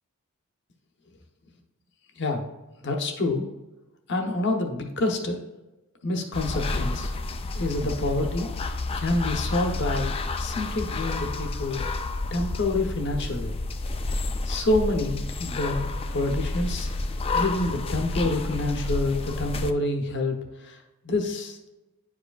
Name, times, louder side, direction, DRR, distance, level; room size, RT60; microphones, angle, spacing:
voice 1, 2.8-3.4 4.1-5.4 6.0-7.1 7.6-11.8 12.3-13.5 14.4-16.9 17.3-21.6, left 2 dB, 50° left, 3 dB, 0.9 m, -27 dB
sound 1, 6.3-19.7, left 2 dB, 25° left, 0.3 m, -30 dB
9.7 x 4.9 x 2.4 m, 1.1 s
head